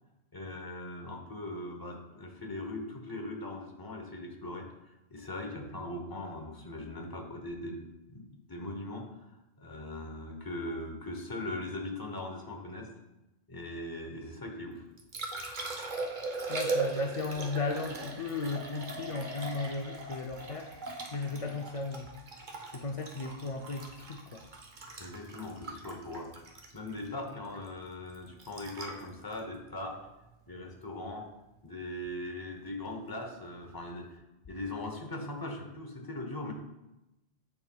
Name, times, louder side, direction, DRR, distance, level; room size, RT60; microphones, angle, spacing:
voice 1, 0.3-9.3 9.6-12.9 13.5-14.8 25.0-26.5 26.7-30.0 30.5-31.3 31.6-34.2 34.5-36.5, left 1 dB, 20° left, 1 dB, 0.8 m, -40 dB
Liquid, 14.7-30.8 33.6-33.8, right 3 dB, 45° right, 0.9 m, -40 dB
voice 2, 16.5-20.7 21.1-22.1 22.7-24.4, left 3 dB, 65° left, 2 dB, 0.3 m, -35 dB
10.5 x 4.4 x 2.3 m, 0.96 s
omnidirectional pair, 1.2 m